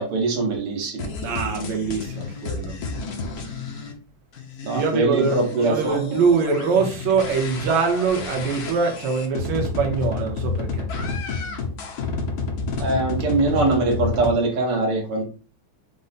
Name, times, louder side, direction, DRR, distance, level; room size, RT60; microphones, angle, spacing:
voice 1, 0.0-1.1 4.6-6.0 12.8-15.2, right 3 dB, 85° right, 1 dB, 2.0 m, -22 dB
sound 1, 1.0-3.9 4.3-14.3, left 4 dB, 60° left, 1.1 m, -30 dB
voice 2, 1.2-2.8 4.7-10.8, right 5 dB, 65° right, 1 dB, 1.5 m, -23 dB
5.1 x 2.1 x 4.0 m, 0.38 s
omnidirectional pair, 2.4 m